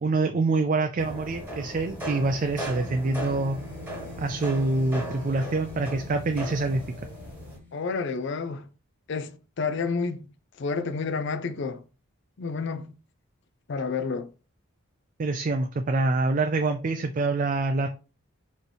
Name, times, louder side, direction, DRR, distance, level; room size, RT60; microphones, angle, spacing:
voice 1, 0.0-3.6 4.2-6.8 15.2-17.9, right 3 dB, 35° right, 0.3 m, -26 dB
sound 1, 1.0-7.6, right 1 dB, 10° right, 1.3 m, -37 dB
sound 2, 1.7-8.4, left 4 dB, 5° left, 0.9 m, -47 dB
voice 2, 7.7-8.7 9.1-10.2 10.6-11.8 12.4-12.9 13.7-14.3, left 4 dB, 55° left, 0.4 m, -30 dB
4.3 x 3.1 x 3.3 m
head